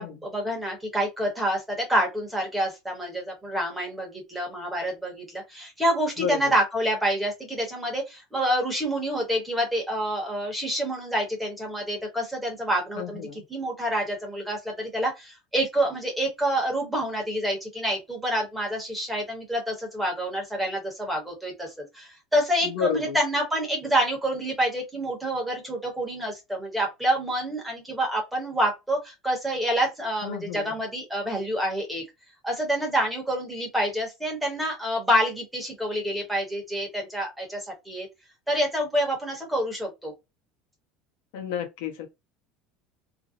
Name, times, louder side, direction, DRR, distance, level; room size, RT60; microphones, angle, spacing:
voice 1, 0.0-32.0 32.4-38.1 38.5-40.1, right 1 dB, 5° right, 0.8 m, -27 dB
voice 2, 6.2-6.5 13.0-13.4 22.6-23.2 30.2-30.7 41.3-42.1, left 8 dB, 80° left, 0.8 m, -31 dB
2.5 x 2.0 x 2.5 m
cardioid pair, 180°, 0 cm